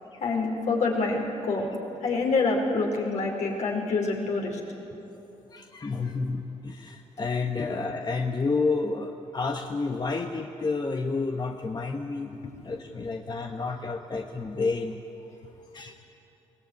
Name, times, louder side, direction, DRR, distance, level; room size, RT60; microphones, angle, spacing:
voice 1, 0.2-1.7 2.0-4.6, left 3 dB, 65° left, -1 dB, 5.2 m, -26 dB
voice 2, 5.5-12.4 12.6-15.0 15.7-15.9, left 4 dB, 35° left, 3 dB, 1.4 m, -30 dB
22.5 x 18.5 x 9.7 m, 2.9 s
supercardioid pair, 55°, 13 cm